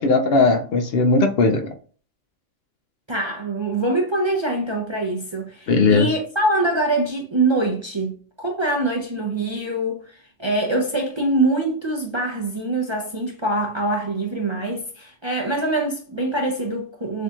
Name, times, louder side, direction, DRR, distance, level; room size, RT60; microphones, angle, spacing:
voice 1, 0.0-1.7 5.7-6.1, left 3 dB, 60° left, 0.8 m, -18 dB
voice 2, 3.1-17.2, right 2 dB, 30° right, 0.6 m, -24 dB
6.7 x 2.8 x 2.4 m
omnidirectional pair, 1.3 m